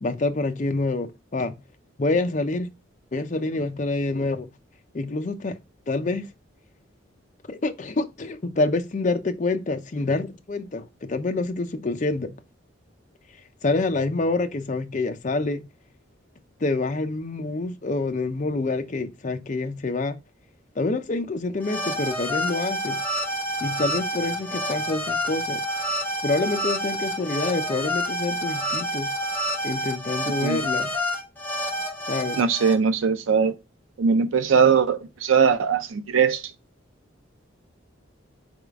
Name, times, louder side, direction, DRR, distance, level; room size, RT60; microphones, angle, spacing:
voice 1, 0.0-1.6 2.0-2.7 3.1-4.5 4.9-5.6 5.9-6.3 7.5-12.3 13.6-15.6 16.6-20.2 20.8-23.0 23.6-25.6 26.2-29.1 29.6-30.9 32.1-32.4, left 3 dB, 40° left, 0.5 m, -27 dB
sound 1, 21.6-32.7, equal, 10° left, 1.0 m, -28 dB
voice 2, 32.4-33.5 34.0-36.4, right 6 dB, 85° right, 0.5 m, -20 dB
4.0 x 3.6 x 3.5 m
head